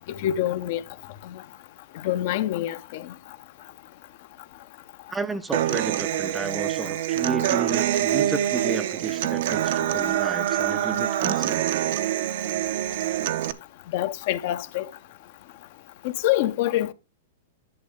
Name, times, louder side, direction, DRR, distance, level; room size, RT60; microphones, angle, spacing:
voice 1, 0.1-0.8 1.3-1.4 2.0-3.1 13.9-14.9 16.2-16.9, left 13 dB, 55° left, 0.8 m, -25 dB
voice 2, 5.1-11.7, right 3 dB, 10° right, 0.5 m, -33 dB
Human voice / Acoustic guitar, 5.5-13.5, right 12 dB, 65° right, 0.8 m, -25 dB
11.0 x 6.3 x 3.6 m
hypercardioid pair, 135°, 0 cm